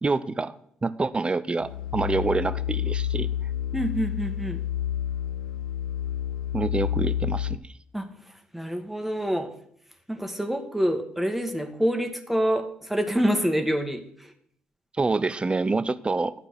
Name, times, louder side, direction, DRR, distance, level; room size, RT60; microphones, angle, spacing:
voice 1, 0.0-0.6 0.8-3.3 6.5-7.7 15.0-16.3, right 3 dB, 25° right, 15 dB, 0.6 m, -26 dB
sound 1, 1.6-7.6, left 10 dB, 85° left, 0.4 m, -29 dB
voice 2, 3.7-4.6 7.9-8.0 8.5-9.5 10.1-14.3, equal, 5° right, 6 dB, 1.5 m, -26 dB
11.5 x 4.9 x 8.0 m, 0.68 s
hypercardioid pair, 45°, 4 cm